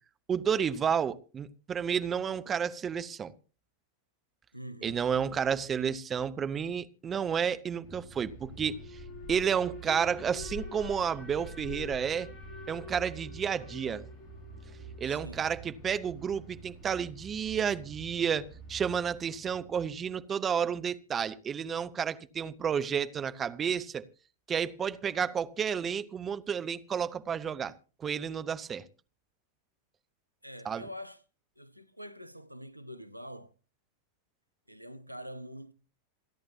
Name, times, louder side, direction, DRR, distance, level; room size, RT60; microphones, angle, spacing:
voice 1, 0.3-3.3 4.8-9.0 9.3-12.3 12.7-14.1 15.0-24.0 24.5-27.7 28.0-28.8 30.6-30.8, right 7 dB, 25° right, 0.9 m, -31 dB
voice 2, 4.5-5.1 15.1-15.4 30.4-31.2 31.6-33.5 34.7-35.7, equal, 90° right, 0.8 m, -45 dB
Alarm, 7.8-19.8, equal, 30° left, 6.4 m, -45 dB
28.0 x 10.5 x 2.8 m
figure-of-eight pair, 90°, 0 cm